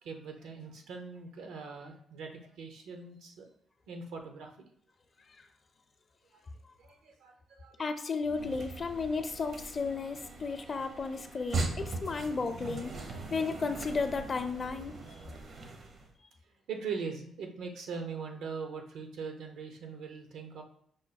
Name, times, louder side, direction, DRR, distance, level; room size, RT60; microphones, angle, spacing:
voice 1, 0.0-3.5 3.9-4.5 6.3-6.4 6.8-7.7 16.7-20.6, right 5 dB, 90° right, 4 dB, 0.8 m, -41 dB
voice 2, 7.8-12.9 13.3-15.2, left 4 dB, 45° left, 8 dB, 0.5 m, -34 dB
sound 1, 8.2-16.1, right 3 dB, 55° right, 0.6 m, -40 dB
5.0 x 2.2 x 4.1 m, 0.65 s
cardioid pair, 85°, 0 cm